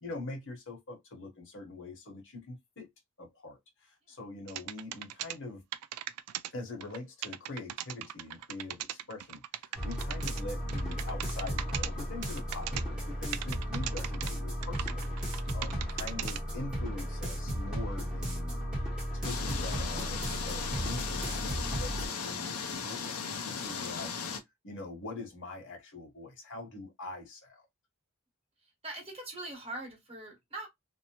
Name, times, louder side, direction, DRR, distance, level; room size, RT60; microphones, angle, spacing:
voice 1, 0.0-2.9 3.2-5.6 6.5-18.6 19.1-23.0 23.4-24.1 24.6-27.6, left 2 dB, 60° left, 1.2 m, -43 dB
sound 1, 4.5-5.4 5.7-6.5 6.8-7.0 7.2-10.4 10.7-11.9 12.2-12.8 13.3-14.3 14.6-16.4, right 12 dB, 85° right, 0.3 m, -38 dB
sound 2, 9.8-22.1, equal, 5° right, 0.9 m, -35 dB
sound 3, 19.2-24.4, left 5 dB, 80° left, 0.6 m, -37 dB
voice 2, 28.6-30.7, right 2 dB, 25° right, 1.2 m, -42 dB
2.7 x 2.1 x 2.9 m
head